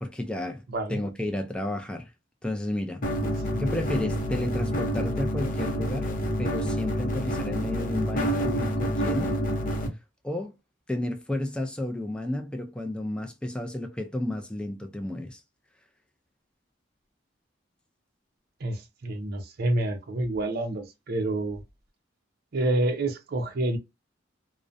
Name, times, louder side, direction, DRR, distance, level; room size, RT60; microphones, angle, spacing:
voice 1, 0.0-0.6 0.9-2.1 2.4-3.0 3.6-6.1 6.4-9.3 10.2-10.5 10.9-15.4, left 1 dB, 5° left, 0.3 m, -32 dB
voice 2, 0.7-1.0 3.2-3.6 18.6-21.6 22.5-23.8, right 2 dB, 55° right, 0.5 m, -28 dB
sound 1, 3.0-9.9, equal, 50° left, 0.6 m, -28 dB
2.4 x 2.1 x 2.5 m
head